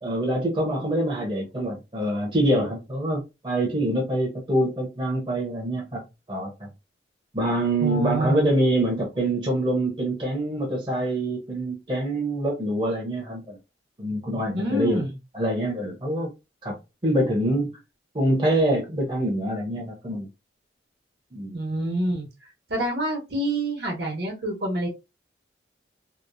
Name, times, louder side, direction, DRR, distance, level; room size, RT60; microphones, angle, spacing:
voice 1, 0.0-6.0 6.3-6.7 7.3-13.6 14.0-15.0 15.3-16.3 16.6-16.8 17.0-17.7 18.1-20.3 21.3-21.6, right 1 dB, 25° right, 0.7 m, -25 dB
voice 2, 7.8-8.5 14.5-15.1 21.5-22.3 22.7-24.9, right 1 dB, 60° right, 1.0 m, -27 dB
2.9 x 2.0 x 2.5 m
head